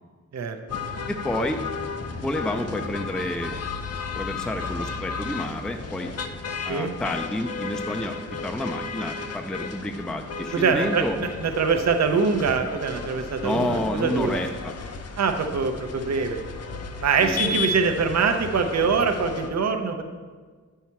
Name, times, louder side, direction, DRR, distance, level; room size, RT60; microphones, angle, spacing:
voice 1, 0.3-0.8 6.7-6.9 10.5-14.4 15.2-16.4 17.0-20.0, right 5 dB, 60° right, 6 dB, 0.7 m, -24 dB
sound 1, 0.7-19.5, left 4 dB, 55° left, 0.6 m, -34 dB
voice 2, 1.1-1.7 2.2-3.6 4.1-6.1 6.6-8.2 8.4-11.2 13.4-14.7 17.2-17.6, left 1 dB, 5° left, 5 dB, 0.4 m, -29 dB
8.4 x 5.6 x 4.5 m, 1.5 s
wide cardioid pair, 135°, 30 cm